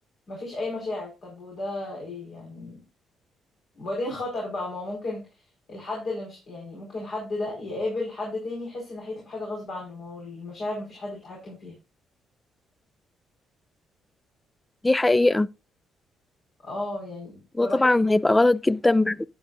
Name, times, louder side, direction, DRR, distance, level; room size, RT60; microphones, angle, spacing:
voice 1, 0.3-2.8 3.7-5.2 5.7-11.7 16.6-17.9, left 2 dB, 60° left, 4.7 m, -33 dB
voice 2, 14.8-15.5 17.6-19.3, left 2 dB, 15° left, 0.4 m, -20 dB
11.5 x 9.3 x 2.5 m
cardioid pair, 85°, 0 cm